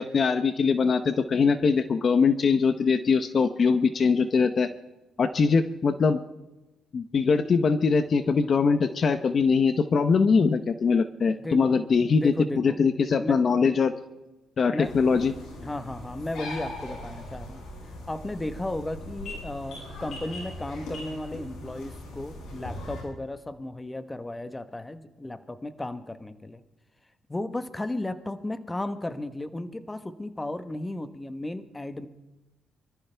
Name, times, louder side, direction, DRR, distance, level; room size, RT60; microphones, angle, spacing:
voice 1, 0.0-4.7 5.2-6.2 6.9-13.9 14.6-15.3, left 5 dB, 45° left, 11 dB, 0.8 m, -22 dB
voice 2, 11.3-11.8 12.1-12.8 13.2-13.4 14.7-14.9 15.6-17.6 18.1-26.6 27.3-32.1, left 1 dB, 15° left, 11 dB, 1.1 m, -34 dB
sound 1, 14.8-23.0, left 1 dB, 75° left, 6.2 m, -40 dB
24.5 x 14.0 x 3.4 m, 1.0 s
cardioid pair, 90°, 0 cm